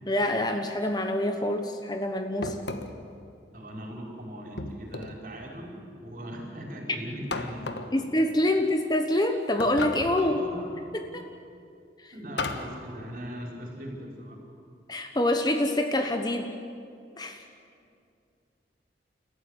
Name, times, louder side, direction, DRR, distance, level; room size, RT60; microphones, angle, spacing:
voice 1, 0.1-2.6 7.9-10.4 10.9-11.3 12.0-12.1 14.9-16.5 17.2-17.4, left 1 dB, 20° left, 6 dB, 1.1 m, -26 dB
sound 1, 2.4-3.1 4.6-5.3 7.3-8.0 9.6-10.3 12.4-12.8, left 3 dB, 70° left, 1.4 m, -34 dB
voice 2, 3.5-8.1 10.2-10.7 12.1-14.4, equal, 50° right, 0 dB, 4.8 m, -39 dB
29.5 x 14.5 x 9.8 m, 2.4 s
head